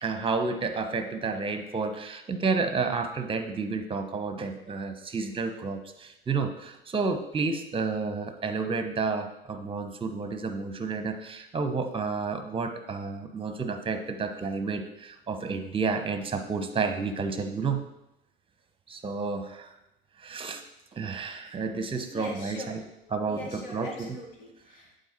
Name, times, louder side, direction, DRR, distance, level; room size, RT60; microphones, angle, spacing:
voice 1, 0.0-17.8 18.9-19.7 20.2-20.6 20.9-22.8 23.1-24.1, right 4 dB, 15° right, 7 dB, 0.9 m, -31 dB
voice 2, 22.1-22.8 23.3-25.0, left 1 dB, 65° left, 0 dB, 1.9 m, -42 dB
8.3 x 3.9 x 4.2 m, 0.87 s
figure-of-eight pair, 75°, 30 cm